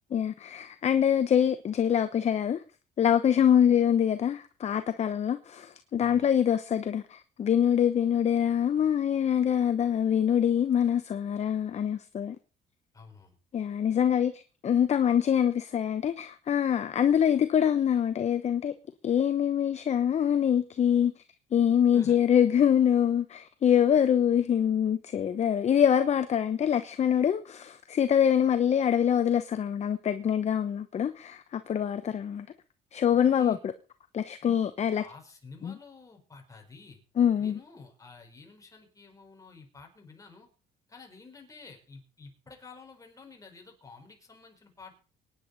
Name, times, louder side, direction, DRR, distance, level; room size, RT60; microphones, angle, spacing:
voice 1, 0.1-2.6 3.0-12.4 13.5-18.7 19.0-21.2 21.5-32.5 32.9-33.7 34.1-35.0 35.6-35.7 37.2-37.6, left 9 dB, 40° left, 0.9 m, -25 dB
voice 2, 6.0-6.3 12.9-13.4 21.9-22.2 33.3-33.6 34.4-34.5 35.0-37.0 37.4-40.5 40.9-44.9, left 4 dB, 20° left, 4.8 m, -51 dB
23.5 x 10.0 x 4.1 m
cardioid pair, 110°, 17 cm